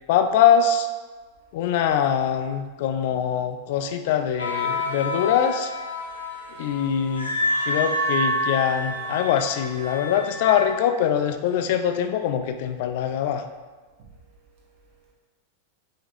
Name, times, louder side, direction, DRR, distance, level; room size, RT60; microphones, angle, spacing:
voice 1, 0.1-0.9 1.5-5.7 6.6-7.3 7.6-13.4, left 8 dB, 50° left, 8 dB, 0.3 m, -23 dB
sound 1, 4.4-10.7, left 1 dB, 85° left, 0.6 m, -28 dB
voice 2, 6.3-7.0 14.0-15.1, right 4 dB, 45° right, -4 dB, 1.2 m, -56 dB
5.1 x 2.7 x 3.0 m, 1.4 s
figure-of-eight pair, 90°, 0 cm